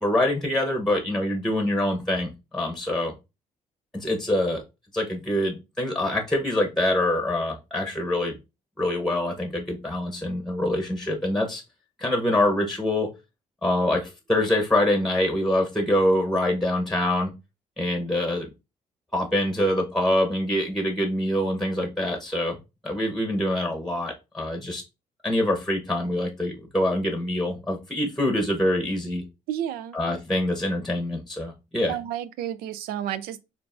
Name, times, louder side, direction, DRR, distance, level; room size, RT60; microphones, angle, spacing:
voice 1, 0.0-3.1 3.9-4.6 4.9-8.3 8.8-11.6 12.0-13.1 13.6-17.3 17.8-18.5 19.1-22.6 22.8-24.8 25.2-29.2 29.9-31.9, left 1 dB, ahead, 1.0 m, -25 dB
voice 2, 29.5-30.0 31.9-33.4, right 11 dB, 90° right, 0.4 m, -31 dB
6.6 x 2.6 x 2.6 m
cardioid pair, 75°, 15 cm